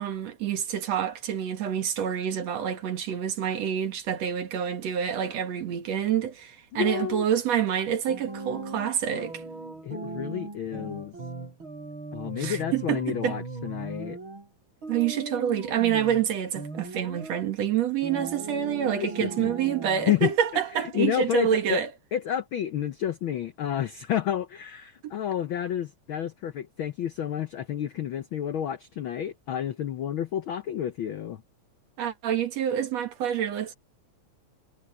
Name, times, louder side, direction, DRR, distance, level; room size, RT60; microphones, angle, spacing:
voice 1, 0.0-9.4 12.4-13.4 14.9-21.9 25.0-25.1 32.0-33.7, right 9 dB, 65° right, 2.8 m, -27 dB
voice 2, 6.7-7.2 9.8-11.1 12.1-14.2 19.0-19.5 20.1-20.3 20.7-21.8 22.1-31.4, left 10 dB, 75° left, 1.1 m, -30 dB
sound 1, 8.1-14.5 14.8-16.3 16.5-17.4 18.0-20.1, right 3 dB, 40° right, 5.9 m, -38 dB
omnidirectional pair, 3.3 m